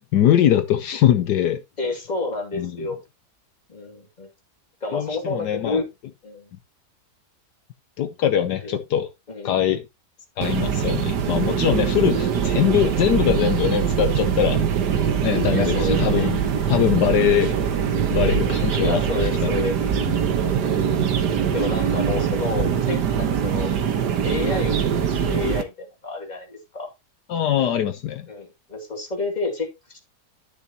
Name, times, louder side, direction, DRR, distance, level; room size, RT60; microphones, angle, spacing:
voice 1, 0.0-1.6 2.6-2.9 4.9-5.8 8.0-9.1 9.4-9.8 10.4-14.6 15.2-16.4 16.7-17.5 18.1-19.3 27.3-28.3, left 10 dB, 75° left, 1.4 m, -22 dB
voice 2, 1.8-3.0 3.7-4.3 4.8-5.9 6.2-6.5 8.6-8.7 9.3-9.6 15.5-16.3 18.8-20.3 21.5-23.7 24.2-26.9 28.3-30.0, left 3 dB, 25° left, 2.6 m, -30 dB
sound 1, 10.4-25.6, right 7 dB, 70° right, 1.8 m, -22 dB
11.5 x 6.8 x 2.9 m
omnidirectional pair, 1.9 m